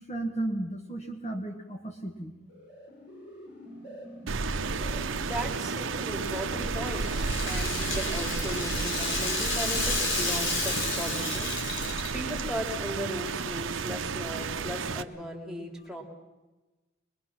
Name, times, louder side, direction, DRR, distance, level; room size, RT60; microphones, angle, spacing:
voice 1, 0.1-2.3, right 2 dB, 35° left, 4 dB, 1.5 m, -34 dB
sound 1, 2.3-12.9, equal, 55° left, 6.6 m, -49 dB
Rain, 4.3-15.0, right 4 dB, 80° right, 0.8 m, -32 dB
voice 2, 4.7-16.0, equal, 5° right, 0 dB, 2.9 m, -37 dB
Rattle (instrument), 6.2-12.4, left 3 dB, 70° left, 3.6 m, -32 dB
22.0 x 22.0 x 6.0 m, 1.2 s
head